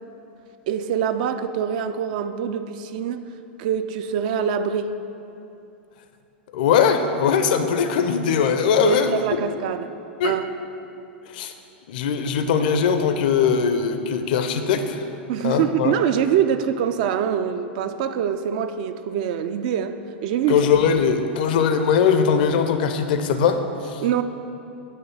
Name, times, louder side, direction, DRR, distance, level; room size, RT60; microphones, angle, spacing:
voice 1, 0.7-3.3 3.6-4.9 8.8-9.9 10.2-10.5 15.3-20.7 24.0-24.2, right 8 dB, 50° right, 0.3 m, -24 dB
voice 2, 6.5-9.2 10.2-10.4 11.3-11.5 11.9-15.0 15.4-15.9 20.5-24.0, left 6 dB, 55° left, 0.5 m, -20 dB
9.2 x 3.2 x 5.5 m
figure-of-eight pair, 90°, 6 cm